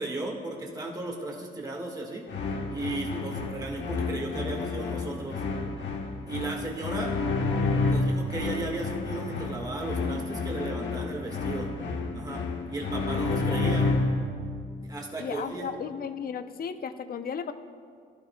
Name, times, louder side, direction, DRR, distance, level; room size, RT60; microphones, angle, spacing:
voice 1, 0.0-2.2 2.7-5.4 6.3-7.2 7.9-11.7 12.1-12.4 12.7-13.9 14.8-15.7, right 2 dB, 20° right, -1 dB, 1.7 m, -35 dB
sound 1, 2.3-14.3, left 3 dB, 70° left, 1.2 m, -30 dB
voice 2, 15.2-17.5, left 7 dB, 50° left, 10 dB, 0.6 m, -34 dB
16.5 x 12.0 x 2.3 m, 2.2 s
cardioid pair, 90°, 20 cm